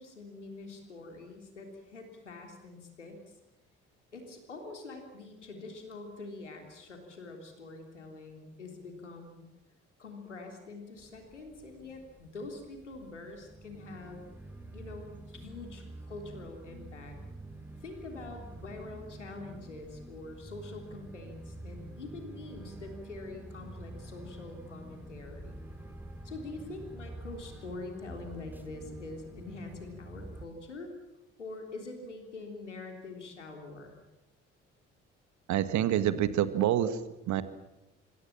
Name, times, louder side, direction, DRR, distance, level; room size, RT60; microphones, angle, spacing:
voice 1, 0.0-3.2 4.1-9.5 10.0-14.2 14.7-17.2 17.8-25.6 26.2-30.9 31.4-34.0, left 3 dB, 85° left, 3 dB, 3.5 m, -45 dB
sound 1, 11.0-30.5, right 2 dB, 5° right, 4.5 m, -47 dB
voice 2, 35.5-37.4, right 11 dB, 55° right, 13 dB, 1.8 m, -27 dB
26.0 x 25.5 x 7.4 m, 0.96 s
figure-of-eight pair, 45°, 35 cm